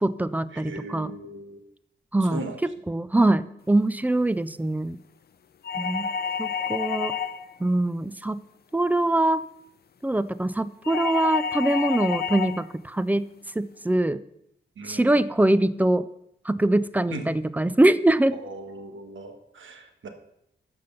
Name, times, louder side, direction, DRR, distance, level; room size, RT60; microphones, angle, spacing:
voice 1, 0.0-1.1 2.1-2.4 2.9-5.0 5.8-6.1 6.4-7.1 7.6-8.4 8.7-9.4 10.0-13.3 13.6-14.2 14.9-16.1 16.5-18.4, right 1 dB, 10° right, 16 dB, 0.3 m, -23 dB
voice 2, 0.5-1.6 2.2-2.6 14.8-15.2 17.1-17.3 18.3-20.1, right 2 dB, 80° right, 5 dB, 1.4 m, -38 dB
sound 1, 5.6-7.6 10.8-12.7, left 6 dB, 55° left, 0.5 m, -29 dB
12.5 x 5.3 x 6.9 m, 0.81 s
wide cardioid pair, 165°, 20 cm